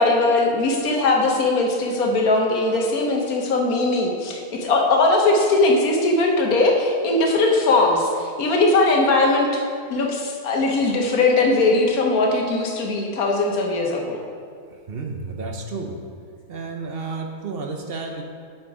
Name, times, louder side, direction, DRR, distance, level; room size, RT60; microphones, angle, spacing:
voice 1, 0.0-9.6 9.9-14.2, left 2 dB, 70° left, 1 dB, 1.4 m, -20 dB
voice 2, 14.7-16.0 16.5-18.2, right 3 dB, 55° right, 3 dB, 0.7 m, -31 dB
8.2 x 5.1 x 4.8 m, 2.1 s
omnidirectional pair, 1.6 m